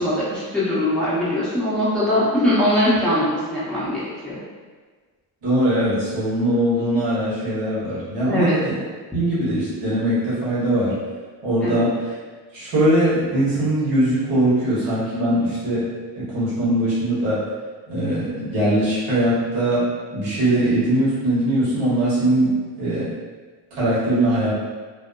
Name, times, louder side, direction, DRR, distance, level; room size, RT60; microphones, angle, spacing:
voice 1, 0.0-4.4 8.2-8.6 11.6-11.8, left 1 dB, ahead, -10 dB, 0.7 m, -21 dB
voice 2, 5.4-8.7 9.1-10.9 11.4-12.1 12.5-15.8 16.2-17.4 17.9-19.8 20.1-22.5 22.8-23.0 23.7-24.5, right 1 dB, 80° right, -10 dB, 1.3 m, -21 dB
2.7 x 2.0 x 2.4 m, 1.4 s
cardioid pair, 100°, 43 cm